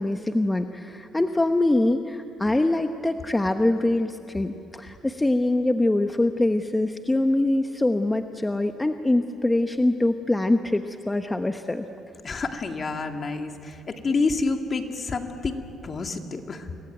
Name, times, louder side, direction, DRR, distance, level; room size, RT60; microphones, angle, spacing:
voice 1, 0.0-11.9, left 2 dB, 15° left, 7 dB, 1.0 m, -24 dB
voice 2, 12.2-16.7, left 3 dB, 40° left, 5 dB, 2.3 m, -28 dB
28.0 x 22.0 x 9.2 m, 2.8 s
cardioid pair, 90°, 0 cm